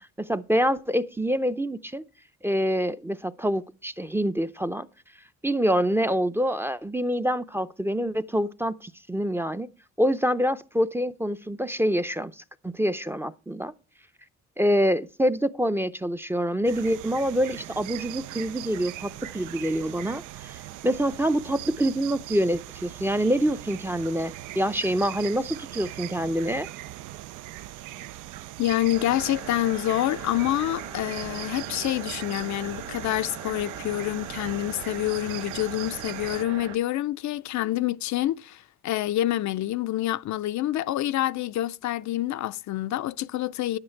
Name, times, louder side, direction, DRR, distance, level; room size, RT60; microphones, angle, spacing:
voice 1, 0.0-2.0 2.4-4.9 5.4-9.7 10.0-13.7 14.6-20.6 20.8-26.7, equal, 10° right, 0.5 m, -26 dB
sound 1, 16.6-36.4, right 15 dB, 85° right, 0.5 m, -40 dB
voice 2, 28.6-43.8, left 14 dB, 70° left, 0.5 m, -27 dB
sound 2, 28.9-36.8, right 6 dB, 55° right, 1.8 m, -40 dB
10.5 x 8.8 x 4.5 m
cardioid pair, 90°, 30 cm